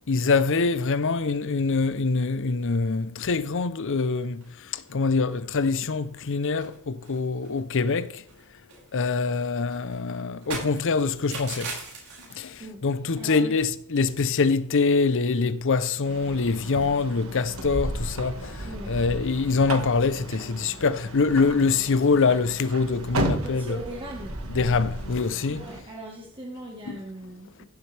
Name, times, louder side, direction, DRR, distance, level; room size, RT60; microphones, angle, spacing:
voice 1, 0.1-4.4 4.7-8.2 8.9-11.7 12.4-23.8 24.5-25.7 26.9-27.0, left 4 dB, 60° left, 0.6 m, -24 dB
sound 1, 4.0-4.5 4.9-5.0 5.3-5.4 5.7-6.3 6.6-8.0 8.3-12.7, right 3 dB, 85° right, 5.6 m, -40 dB
voice 2, 13.2-13.6 18.6-19.0 23.4-24.4 25.5-27.7, right 1 dB, 25° right, 1.5 m, -39 dB
sound 2, 16.0-25.8, right 1 dB, 70° right, 1.7 m, -34 dB
15.5 x 7.6 x 3.4 m
head